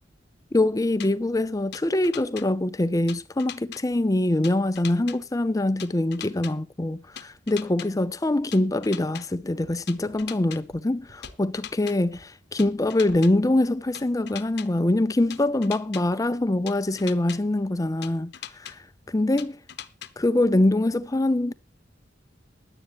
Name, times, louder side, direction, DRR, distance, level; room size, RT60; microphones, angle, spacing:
voice 1, 0.5-18.8 19.1-19.6 20.2-21.5, left 1 dB, 20° left, 0.5 m, -24 dB
sound 1, 1.0-1.1 1.7-2.4 3.1-3.8 4.4-5.2 5.8-6.5 7.2-7.9 8.5-9.2 9.9-10.6 11.2-11.9 12.6-13.3 13.9-14.7 15.3-16.0 16.7-17.4 18.0-18.7 19.4-20.1, left 10 dB, 60° left, 0.9 m, -39 dB
sound 2, 9.0-13.8, equal, 70° right, 4.5 m, -55 dB
17.0 x 11.0 x 3.0 m
head